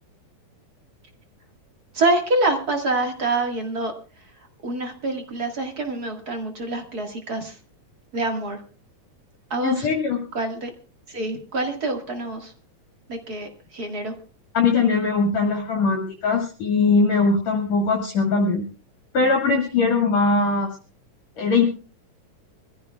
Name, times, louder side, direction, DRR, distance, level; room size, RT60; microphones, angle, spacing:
voice 1, 1.9-3.9 4.6-7.6 8.1-8.6 9.5-9.9 10.3-10.7 11.1-12.5 13.1-14.1, right 2 dB, 35° right, 3 dB, 1.8 m, -26 dB
voice 2, 9.6-10.2 14.5-18.7 19.1-20.7 21.4-21.6, left 4 dB, 55° left, 1 dB, 3.0 m, -20 dB
25.0 x 14.5 x 2.3 m, 0.36 s
omnidirectional pair, 3.7 m